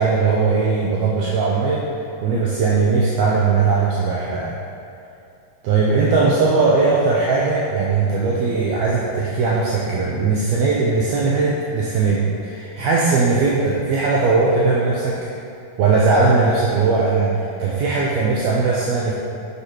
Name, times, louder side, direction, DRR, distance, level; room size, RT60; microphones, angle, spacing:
voice 1, 0.0-1.9 2.2-4.6 5.6-15.2 15.8-19.1, right 4 dB, 75° right, -4 dB, 1.8 m, -19 dB
6.7 x 5.8 x 4.6 m, 2.5 s
omnidirectional pair, 3.4 m